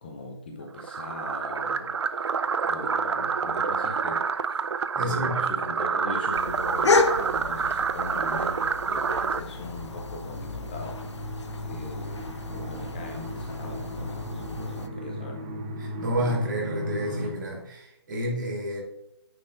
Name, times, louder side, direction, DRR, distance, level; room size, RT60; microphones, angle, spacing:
voice 1, 0.0-4.6 5.0-15.5, left 2 dB, 20° left, 1 dB, 0.5 m, -40 dB
sound 1, 0.8-9.4, right 6 dB, 75° right, 0.4 m, -28 dB
voice 2, 4.9-5.5 15.8-18.8, right 1 dB, 45° right, -1 dB, 2.1 m, -30 dB
sound 2, 6.3-14.9, left 3 dB, 85° left, 0.7 m, -31 dB
sound 3, 9.4-17.3, left 1 dB, 25° right, 1.0 m, -36 dB
9.6 x 4.1 x 2.5 m, 0.80 s
hypercardioid pair, 160°, 14 cm